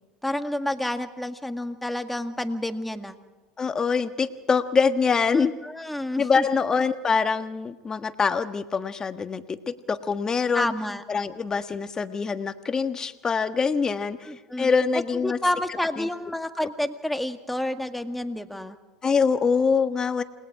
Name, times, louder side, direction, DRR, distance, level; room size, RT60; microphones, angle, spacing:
voice 1, 0.2-3.2 5.3-6.4 10.5-11.0 14.2-14.7 15.2-18.8, left 1 dB, 5° left, 6 dB, 1.8 m, -29 dB
voice 2, 3.6-5.5 6.2-10.7 11.1-14.3 14.6-15.4 16.0-16.1 19.0-20.2, left 5 dB, 25° left, 9 dB, 1.5 m, -24 dB
28.5 x 20.5 x 4.9 m, 1.2 s
hypercardioid pair, 85°, 2 cm